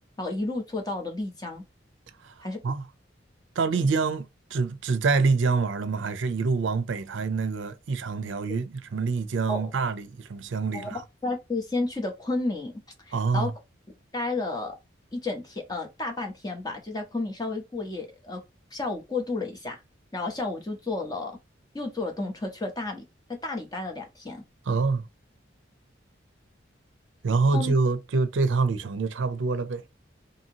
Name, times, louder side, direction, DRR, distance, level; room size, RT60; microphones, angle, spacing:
voice 1, 0.2-1.6 2.4-2.6 3.7-3.8 9.5-9.7 10.7-12.7 13.0-13.5 14.1-14.7 15.1-18.4 18.7-19.8 20.1-21.4 21.7-23.0 23.3-24.4 27.5-27.7, left 2 dB, 20° left, 0.7 m, -32 dB
voice 2, 2.2-2.8 3.6-4.3 4.5-11.0 13.1-13.5 24.7-25.0 27.2-29.8, right 4 dB, 70° right, 0.5 m, -26 dB
2.8 x 2.7 x 2.8 m
head